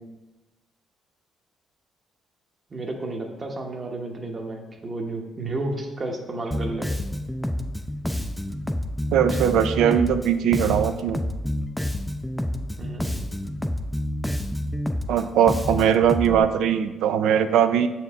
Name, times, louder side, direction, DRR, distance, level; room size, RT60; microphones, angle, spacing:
voice 1, 2.7-6.9 12.8-13.3 16.2-16.4, right 2 dB, 35° right, 2 dB, 1.0 m, -32 dB
Bass guitar, 6.5-16.4, left 1 dB, 5° left, 0.4 m, -28 dB
voice 2, 9.1-11.2 15.1-17.9, right 8 dB, 85° right, 10 dB, 0.4 m, -20 dB
6.4 x 4.6 x 3.5 m, 1.1 s
cardioid pair, 90°, 0 cm